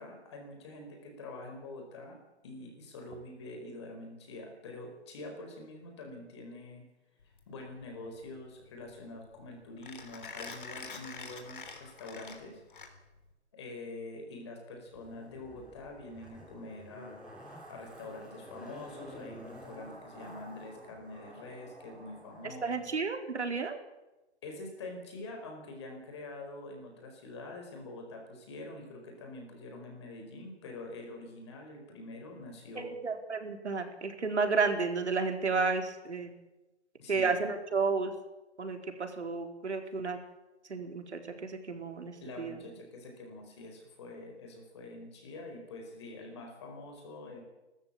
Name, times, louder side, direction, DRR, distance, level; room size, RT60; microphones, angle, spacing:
voice 1, 0.0-2.2 2.4-6.8 7.5-12.6 13.5-17.2 17.7-22.9 24.4-32.9 37.0-37.4 42.2-47.4, left 2 dB, 25° left, 3 dB, 4.8 m, -45 dB
Mechanisms, 7.2-13.3, left 5 dB, 50° left, 3.8 m, -47 dB
Zipper (clothing), 14.9-22.6 22.9-23.0, equal, ahead, 3.1 m, -50 dB
voice 2, 22.6-23.8 32.7-36.3 37.1-38.1 38.6-40.2 40.7-42.6, right 4 dB, 80° right, 5 dB, 4.4 m, -32 dB
29.0 x 14.0 x 8.7 m, 1.0 s
hypercardioid pair, 175°, 33 cm